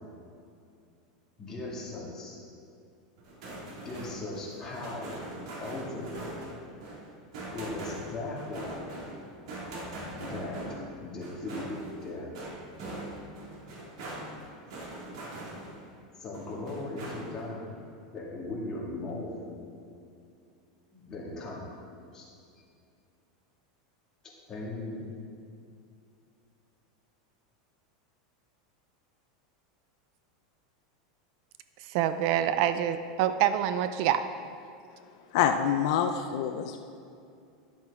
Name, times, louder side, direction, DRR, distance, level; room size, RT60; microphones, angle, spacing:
voice 1, 1.4-2.4 3.8-5.3 5.6-6.5 7.5-8.8 10.2-10.6 11.0-12.3 16.2-17.7 18.1-19.4 20.9-21.8 22.1-22.3 24.2-25.2, left 2 dB, 20° left, -5 dB, 2.1 m, -38 dB
sound 1, 3.2-15.9 16.3-17.5, right 1 dB, 80° right, 2.4 m, -42 dB
voice 2, 31.9-34.2, right 10 dB, 50° right, 11 dB, 0.4 m, -26 dB
voice 3, 35.3-36.8, left 8 dB, 60° left, 6 dB, 0.5 m, -26 dB
11.0 x 7.7 x 3.6 m, 2.5 s
supercardioid pair, 155°, 3 cm